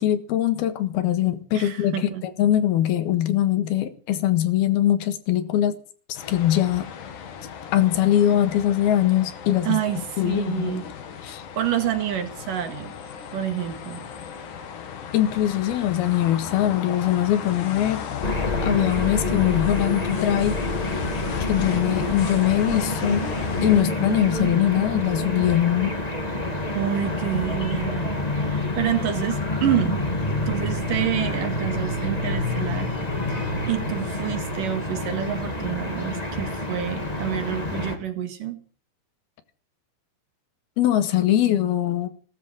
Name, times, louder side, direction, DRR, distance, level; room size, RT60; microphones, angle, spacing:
voice 1, 0.0-2.1 2.4-5.8 6.1-6.9 7.7-10.8 11.2-11.4 15.1-18.0 18.6-20.6 21.4-23.2 23.6-26.0 40.8-42.1, left 12 dB, 85° left, 3.4 m, -22 dB
voice 2, 1.5-2.3 9.6-10.8 11.2-12.9 13.3-14.1 26.8-28.1 28.4-30.0 30.5-32.9 33.3-38.6, right 11 dB, 65° right, 3.5 m, -28 dB
sound 1, 6.1-23.8, left 7 dB, 60° left, 3.2 m, -35 dB
sound 2, 18.2-38.0, left 1 dB, 15° left, 1.7 m, -27 dB
18.0 x 13.0 x 6.1 m
omnidirectional pair, 4.4 m